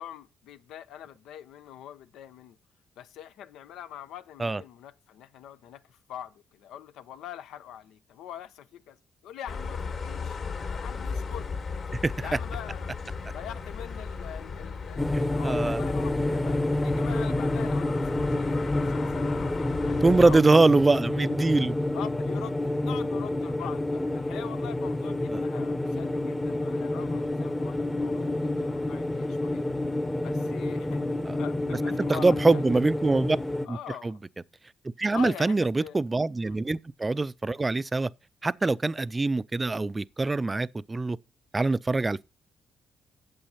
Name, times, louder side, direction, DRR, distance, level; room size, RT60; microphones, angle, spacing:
voice 1, 0.0-2.6 3.0-10.4 10.7-11.5 12.2-12.9 13.3-20.4 21.9-29.7 30.2-32.6 33.6-34.2 35.1-36.0 36.5-36.6, left 10 dB, 85° left, 0.9 m, -43 dB
sound 1, 9.5-20.4, left 5 dB, 55° left, 2.8 m, -36 dB
voice 2, 11.9-12.3 15.1-15.9 20.0-21.8 25.3-25.4 32.1-33.4 33.7-33.8 34.0-34.1 35.0-38.1 38.4-41.2 41.5-42.2, right 3 dB, 20° right, 0.4 m, -24 dB
sound 2, 15.0-33.7, left 2 dB, 15° left, 0.9 m, -29 dB
8.8 x 7.7 x 5.6 m
cardioid pair, 90°, 0 cm